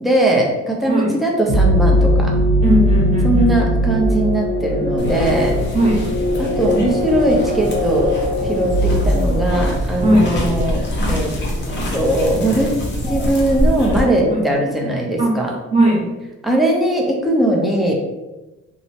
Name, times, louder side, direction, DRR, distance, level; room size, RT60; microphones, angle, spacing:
voice 1, 0.0-2.3 3.2-5.5 6.4-8.1 8.4-11.3 11.9-12.8 13.0-15.5 16.4-17.9, right 1 dB, ahead, -2 dB, 0.5 m, -19 dB
sound 1, 1.5-10.1, equal, 90° left, 1.0 m, -19 dB
voice 2, 2.6-3.7 5.7-6.1 10.0-10.3 14.3-14.5 15.2-15.3 15.7-16.1, right 1 dB, 25° right, -4 dB, 0.9 m, -17 dB
sound 2, 5.0-14.0, left 1 dB, 40° left, 0.7 m, -24 dB
2.8 x 2.1 x 2.7 m, 1.1 s
cardioid pair, 105°, 29 cm